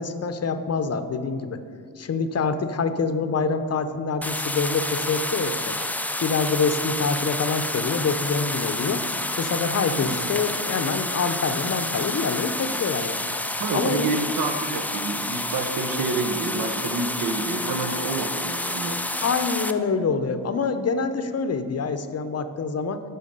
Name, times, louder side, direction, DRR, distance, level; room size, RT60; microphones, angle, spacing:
voice 1, 0.0-1.6 2.0-5.8 6.2-9.0 9.4-13.3 13.7-14.1 19.2-23.0, left 4 dB, 45° left, 10 dB, 0.6 m, -26 dB
sound 1, 4.2-19.7, left 1 dB, 5° left, 0.3 m, -29 dB
voice 2, 13.6-19.0, right 3 dB, 75° right, 5 dB, 0.9 m, -28 dB
8.4 x 5.7 x 5.2 m, 2.2 s
cardioid pair, 80°, 36 cm